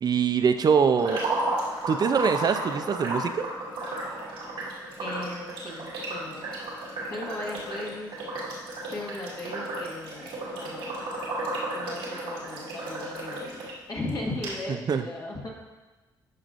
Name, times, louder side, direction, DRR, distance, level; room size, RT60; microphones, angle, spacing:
voice 1, 0.0-1.2 1.9-3.5 14.9-15.0, right 6 dB, 50° right, 9 dB, 0.5 m, -23 dB
sound 1, 1.0-13.7 14.1-14.2 14.4-14.5, right 2 dB, 85° right, 2.2 m, -33 dB
voice 2, 5.0-6.5 7.1-8.2 8.9-11.1 11.7-15.5, left 2 dB, 45° left, -3 dB, 1.7 m, -37 dB
12.0 x 5.4 x 2.6 m, 1.2 s
supercardioid pair, 70°, 9 cm